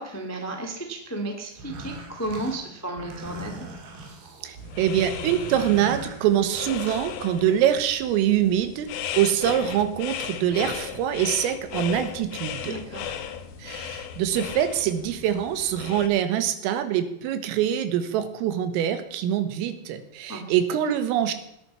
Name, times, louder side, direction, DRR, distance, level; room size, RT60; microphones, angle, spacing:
voice 1, 0.0-3.7 12.6-13.1 20.3-20.4, right 1 dB, 10° left, 3 dB, 0.6 m, -33 dB
sound 1, 1.5-7.1, right 2 dB, 65° right, 4.6 m, -40 dB
voice 2, 4.4-8.9 9.1-12.8 13.6-21.3, right 10 dB, 85° right, 10 dB, 4.1 m, -24 dB
sound 2, 4.6-16.1, left 9 dB, 70° left, 2.4 m, -36 dB
18.0 x 11.5 x 5.7 m, 0.80 s
omnidirectional pair, 5.8 m